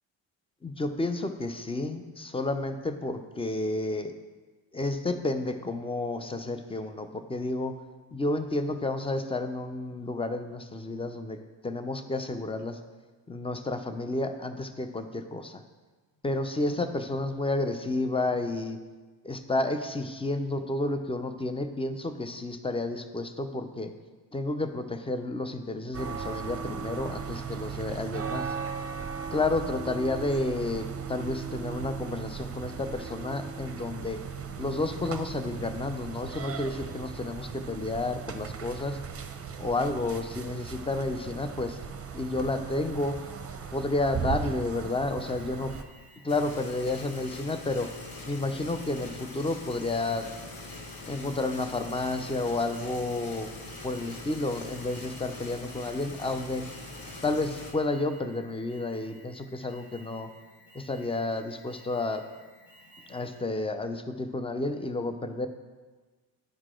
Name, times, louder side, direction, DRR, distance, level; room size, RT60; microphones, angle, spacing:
voice 1, 0.6-4.1 4.7-7.8 8.1-11.4 11.6-12.8 13.3-15.6 16.2-18.8 19.2-23.9 24.3-28.5 29.3-34.2 34.6-39.0 39.6-41.8 42.1-43.2 43.7-45.7 46.2-47.9 48.3-50.3 51.1-53.5 53.8-56.7 57.2-60.3 60.7-62.3 63.1-65.5, left 2 dB, 10° left, 8 dB, 0.6 m, -31 dB
sound 1, 25.9-45.8, right 6 dB, 30° right, 0.8 m, -37 dB
Alarm, 45.2-63.6, equal, 75° left, 2.0 m, -56 dB
sound 2, 46.3-57.7, left 2 dB, 45° left, 1.3 m, -43 dB
10.5 x 4.7 x 3.7 m, 1.3 s
supercardioid pair, 55°, 49 cm